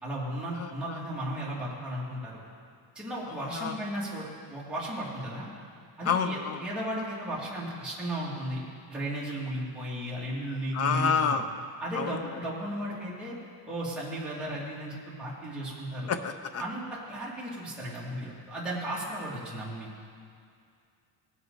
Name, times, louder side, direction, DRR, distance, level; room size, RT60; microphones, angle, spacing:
voice 1, 0.0-2.4 2.9-5.5 6.0-8.6 8.9-11.4 11.8-13.4 13.7-16.1 16.6-19.9, right 1 dB, ahead, -8 dB, 2.5 m, -35 dB
voice 2, 0.6-1.0 3.5-3.7 6.0-6.6 10.7-11.5 11.9-12.2 16.1-16.6, left 6 dB, 35° left, 9 dB, 0.6 m, -28 dB
18.0 x 7.9 x 4.0 m, 2.3 s
cardioid pair, 165°, 46 cm